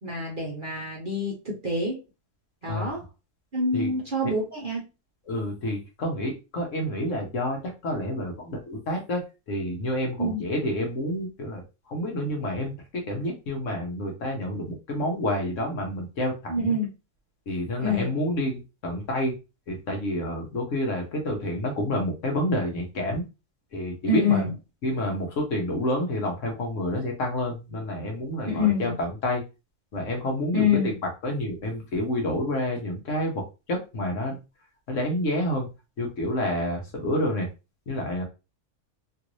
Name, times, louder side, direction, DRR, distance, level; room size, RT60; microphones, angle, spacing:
voice 1, 0.0-2.0 2.6-3.0 3.5-4.8 10.2-10.5 16.5-16.9 17.8-18.1 24.1-24.5 28.5-29.0 30.5-30.9, left 3 dB, 45° right, -3 dB, 0.8 m, -26 dB
voice 2, 5.3-9.2 9.5-11.6 11.9-16.8 17.5-19.3 19.7-23.2 23.7-24.4 24.8-29.4 29.9-30.7 31.2-33.4 33.7-34.4 34.9-35.7 36.0-37.5 37.9-38.2, left 1 dB, 60° left, 2 dB, 1.2 m, -29 dB
3.0 x 2.5 x 3.0 m, 0.29 s
omnidirectional pair, 1.6 m